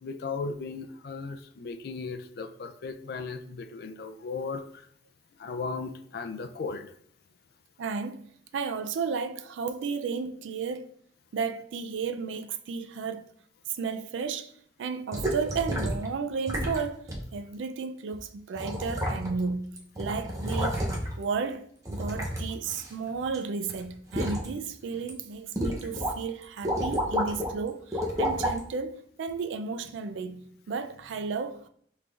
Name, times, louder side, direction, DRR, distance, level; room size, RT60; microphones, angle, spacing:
voice 1, 0.0-4.9 5.4-6.9, left 4 dB, 55° left, 0.4 m, -36 dB
voice 2, 7.8-8.3 8.5-10.9 11.3-13.2 13.7-14.5 14.8-19.7 20.0-20.8 21.2-31.7, right 5 dB, 90° right, 0.4 m, -33 dB
sound 1, 15.1-16.1 16.5-16.8 17.1-17.2 18.1-18.2 18.5-19.5 19.8-21.2 21.8-23.4 23.7-24.5 24.9-25.1 25.6-26.1 26.4-27.5 27.9-28.6 29.3-29.4, equal, 20° right, 0.7 m, -30 dB
5.9 x 3.3 x 2.4 m
head